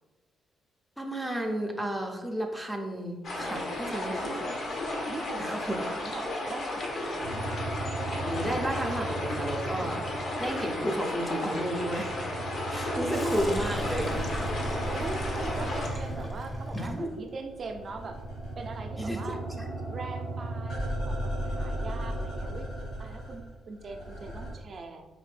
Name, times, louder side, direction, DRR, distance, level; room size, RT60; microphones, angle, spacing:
voice 1, 1.0-4.3 5.4-5.8 8.1-10.0 10.4-12.4 12.7-14.2 16.7-17.2 19.0-19.7, equal, ahead, 2 dB, 0.5 m, -32 dB
sound 1, 3.2-15.9, left 1 dB, 60° left, 1.0 m, -34 dB
voice 2, 5.1-7.5 12.7-13.6 14.8-18.2 18.6-19.4 19.9-22.7 23.0-25.1, right 3 dB, 45° right, 4 dB, 0.5 m, -40 dB
sound 2, 7.2-11.0 11.3-17.2 17.5-24.5, right 2 dB, 80° left, 1.4 m, -36 dB
Sink (filling or washing), 13.1-21.0, left 1 dB, 30° left, 0.8 m, -42 dB
4.1 x 2.6 x 3.3 m, 1.2 s
cardioid pair, 90°, 0 cm